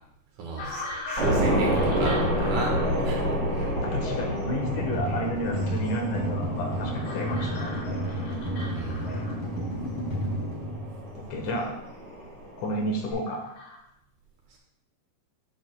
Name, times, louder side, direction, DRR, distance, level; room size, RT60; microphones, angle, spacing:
voice 1, 0.4-0.8 1.1-3.7 8.7-9.1, right 2 dB, 85° right, -1 dB, 3.0 m, -34 dB
sound 1, 0.6-13.8, left 2 dB, 60° left, 2.1 m, -41 dB
sound 2, 1.2-13.1, equal, 40° right, 2.1 m, -30 dB
voice 2, 3.8-7.7 11.1-11.7 12.6-13.4, equal, 85° left, 2 dB, 2.6 m, -31 dB
sound 3, 4.6-11.5, equal, 45° left, 2.9 m, -32 dB
8.0 x 6.7 x 2.3 m, 0.80 s
omnidirectional pair, 3.4 m